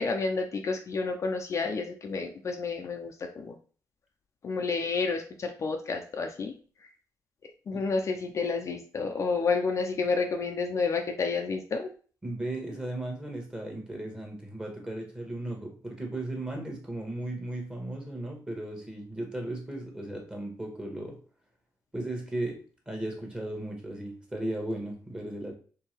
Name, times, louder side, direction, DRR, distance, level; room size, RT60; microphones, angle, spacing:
voice 1, 0.0-3.6 4.4-6.5 7.7-11.9, left 4 dB, 45° left, 4 dB, 0.6 m, -30 dB
voice 2, 12.2-21.2 21.9-25.5, right 1 dB, 10° right, 1 dB, 1.3 m, -36 dB
4.5 x 3.4 x 3.3 m, 0.40 s
wide cardioid pair, 140°, 7 cm